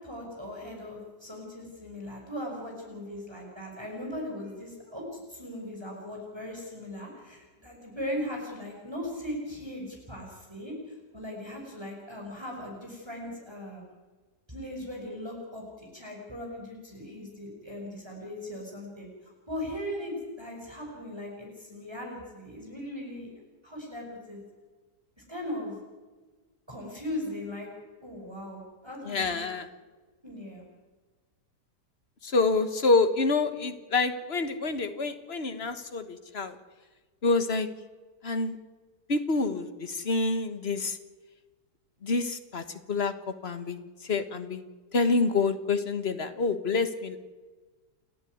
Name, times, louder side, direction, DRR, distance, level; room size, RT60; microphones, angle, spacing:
voice 1, 0.0-13.8 14.5-23.3 23.6-24.4 25.3-25.8 26.7-27.7 28.0-29.5 30.2-30.7, left 1 dB, 15° right, -1 dB, 5.9 m, -39 dB
voice 2, 29.1-29.7 32.2-36.6 37.2-37.7 38.2-38.6 39.1-41.0 42.0-42.6 42.9-43.1 43.4-43.8 44.1-44.6 44.9-47.2, left 3 dB, 40° left, 9 dB, 1.6 m, -27 dB
30.0 x 11.0 x 9.6 m, 1.3 s
omnidirectional pair, 1.8 m